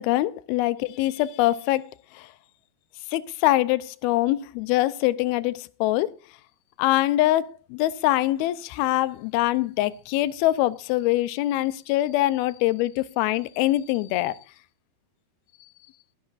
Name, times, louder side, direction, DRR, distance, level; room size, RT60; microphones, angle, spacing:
voice 1, 0.0-1.9 2.2-2.3 3.1-6.2 6.8-14.4, left 16 dB, 80° left, 2.6 m, -24 dB
20.5 x 11.0 x 2.5 m
omnidirectional pair, 4.4 m